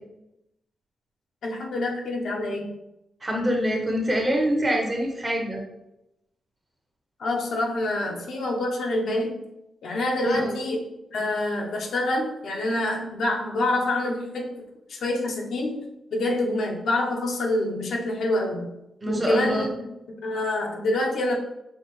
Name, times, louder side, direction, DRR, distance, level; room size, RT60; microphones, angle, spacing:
voice 1, 1.4-2.7 7.2-9.4 9.8-10.8 11.1-14.6 14.9-15.9 16.1-18.7 19.1-19.7 20.2-21.3, left 1 dB, 75° left, 0 dB, 0.8 m, -26 dB
voice 2, 3.2-5.6 10.2-10.6 19.0-19.6, equal, 20° right, 0 dB, 1.0 m, -25 dB
5.5 x 2.6 x 3.1 m, 0.88 s
wide cardioid pair, 120°, 0 cm